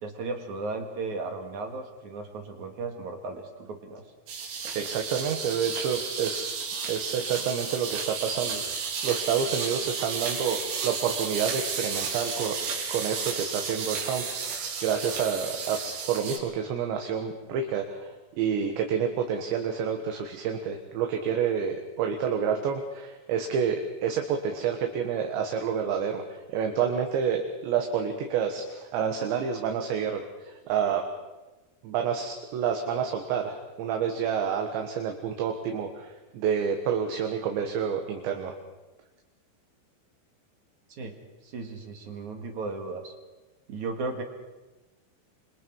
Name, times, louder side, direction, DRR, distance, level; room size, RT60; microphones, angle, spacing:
voice 1, 0.0-4.0 40.9-41.2 41.4-43.1 43.7-44.2, right 3 dB, 50° right, 4 dB, 2.4 m, -35 dB
sound 1, 4.3-16.4, right 5 dB, 90° right, 6.0 m, -33 dB
voice 2, 4.7-6.6 6.9-12.6 12.9-14.2 14.8-15.8 16.1-26.2 26.5-31.0 31.8-38.6, right 7 dB, 70° right, 4 dB, 3.5 m, -29 dB
27.0 x 26.0 x 4.7 m, 1.1 s
omnidirectional pair, 5.9 m